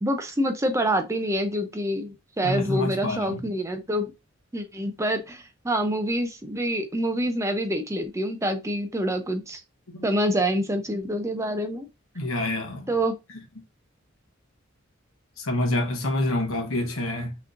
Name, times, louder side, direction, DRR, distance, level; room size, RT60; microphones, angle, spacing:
voice 1, 0.0-4.1 4.5-9.6 10.0-11.9 12.9-13.1, equal, 15° right, 0.5 m, -26 dB
voice 2, 2.4-3.4 9.9-10.1 12.1-13.0 15.4-17.4, left 1 dB, 85° left, 1.1 m, -27 dB
5.9 x 3.0 x 2.5 m
head